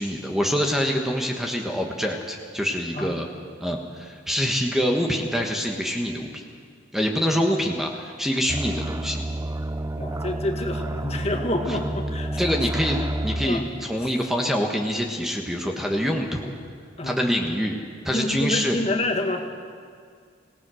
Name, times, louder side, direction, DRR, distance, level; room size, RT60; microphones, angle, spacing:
voice 1, 0.0-3.3 3.6-6.4 6.9-9.3 11.7-11.8 12.4-16.5 17.0-17.8 18.0-18.8, equal, ahead, 2 dB, 1.4 m, -25 dB
sound 1, 8.5-13.5, right 1 dB, 15° right, 0.6 m, -30 dB
voice 2, 10.0-12.4 13.4-13.7 14.0-14.1 17.0-17.2 18.1-19.5, left 1 dB, 35° left, 4 dB, 2.0 m, -27 dB
26.5 x 18.0 x 6.4 m, 2.1 s
head